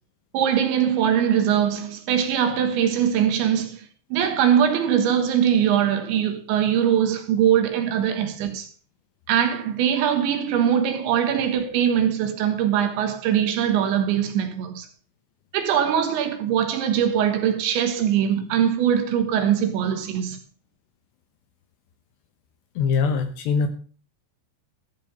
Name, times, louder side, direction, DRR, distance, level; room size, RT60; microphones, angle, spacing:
voice 1, 0.3-8.7 9.3-14.9 15.5-20.4, right 9 dB, 70° right, 3.4 m, -22 dB
voice 2, 22.8-23.7, left 5 dB, 75° left, 2.8 m, -22 dB
14.5 x 7.5 x 6.7 m
omnidirectional pair, 5.9 m